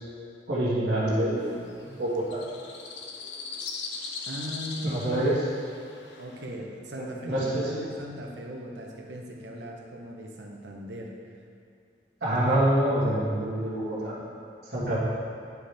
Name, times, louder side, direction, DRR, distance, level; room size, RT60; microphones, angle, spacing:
voice 1, 0.5-2.4 4.8-5.4 6.9-7.7 12.2-14.2 14.7-15.0, right 1 dB, 60° right, -12 dB, 1.8 m, -26 dB
sound 1, 1.4-6.5, left 4 dB, 80° left, 0.7 m, -40 dB
voice 2, 4.3-5.5 6.2-11.1, equal, 85° right, 0 dB, 1.0 m, -38 dB
9.5 x 5.1 x 3.4 m, 2.5 s
head